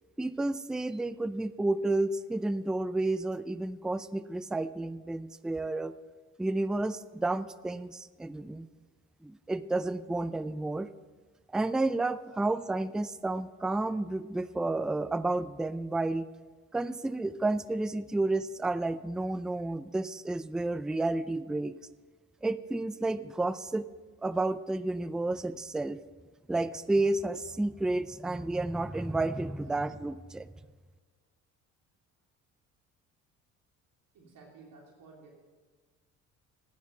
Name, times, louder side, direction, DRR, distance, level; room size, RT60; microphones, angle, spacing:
voice 1, 0.2-5.9 6.4-8.7 9.2-10.9 11.5-16.3 16.7-21.7 22.4-23.8 24.2-26.0 26.5-30.5, right 2 dB, ahead, 15 dB, 0.4 m, -31 dB
voice 2, 34.1-35.3, right 3 dB, 55° right, -1 dB, 3.1 m, -53 dB
15.5 x 9.5 x 5.6 m, 1.4 s
hypercardioid pair, 55°, 38 cm